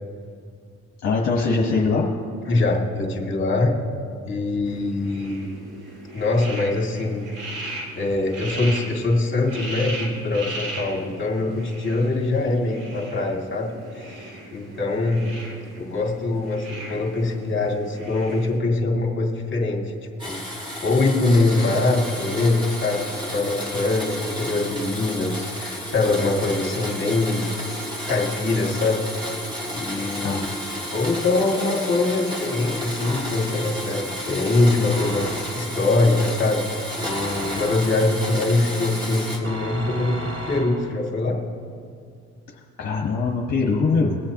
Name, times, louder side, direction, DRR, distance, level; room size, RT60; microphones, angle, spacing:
voice 1, 1.0-2.0 30.2-30.5 42.8-44.2, left 4 dB, 60° left, -3 dB, 1.4 m, -22 dB
voice 2, 2.5-3.7 4.2-5.5 6.1-7.2 7.5-13.7 14.1-15.3 15.8-19.8 20.2-27.4 27.7-29.0 29.7-30.5 30.9-36.6 37.0-40.2 40.5-41.4, left 2 dB, 40° left, -1 dB, 2.3 m, -23 dB
sound 1, 4.6-18.6, right 2 dB, 85° right, 3.0 m, -38 dB
Domestic sounds home sounds, 20.2-39.4, left 1 dB, 15° right, 2.6 m, -32 dB
sound 2, 33.0-33.7 34.9-35.8 37.0-38.2 39.4-41.1, right 1 dB, 40° right, 2.0 m, -35 dB
21.5 x 7.8 x 3.0 m, 2.3 s
cardioid pair, 90°, 30 cm